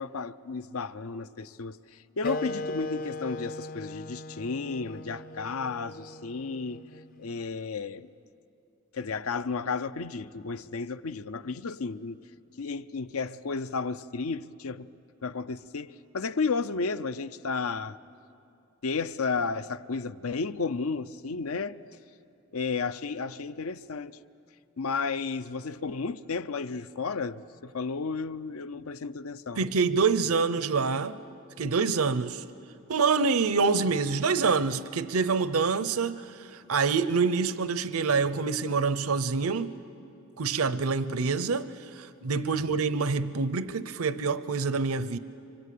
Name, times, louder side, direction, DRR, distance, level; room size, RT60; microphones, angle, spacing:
voice 1, 0.0-6.8 7.2-8.1 8.9-12.2 12.6-14.9 15.2-18.0 18.8-21.8 22.5-24.2 24.8-29.6 42.5-42.8, left 4 dB, 85° left, 0.7 m, -33 dB
Wind instrument woodwind instrument, 2.2-7.3, left 2 dB, 40° left, 0.6 m, -38 dB
voice 2, 29.6-31.2 31.6-32.4 32.9-39.8 40.4-45.2, right 4 dB, 90° right, 0.7 m, -26 dB
27.0 x 25.5 x 8.5 m
head